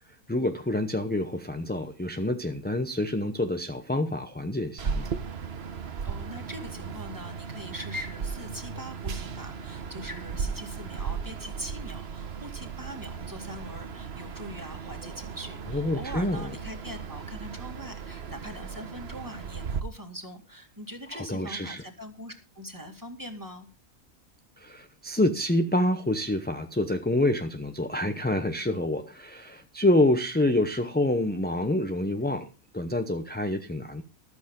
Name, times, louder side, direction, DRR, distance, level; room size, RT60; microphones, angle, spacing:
voice 1, 0.3-5.1 15.7-16.5 21.1-21.8 24.6-32.5 32.7-34.0, left 1 dB, 10° left, 6 dB, 0.6 m, -27 dB
sound 1, 4.8-19.8, right 6 dB, 50° right, 1.2 m, -36 dB
voice 2, 5.8-23.7, equal, 15° right, 5 dB, 2.2 m, -42 dB
14.0 x 13.0 x 3.7 m, 0.31 s
omnidirectional pair, 1.5 m